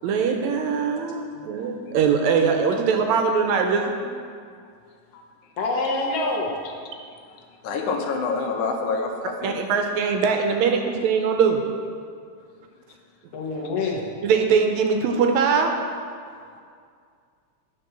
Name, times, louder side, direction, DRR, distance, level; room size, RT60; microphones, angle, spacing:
voice 1, 0.0-3.9 9.4-11.6 14.2-15.7, right 6 dB, 80° right, 4 dB, 1.9 m, -21 dB
voice 2, 1.3-1.7 5.1-5.2 7.1-7.4 7.6-9.6 16.4-16.5, left 4 dB, 85° left, 1 dB, 2.2 m, -28 dB
voice 3, 5.6-6.5 13.3-14.0, left 3 dB, 60° left, -1 dB, 1.8 m, -26 dB
9.1 x 4.4 x 6.7 m, 2.2 s
omnidirectional pair, 3.4 m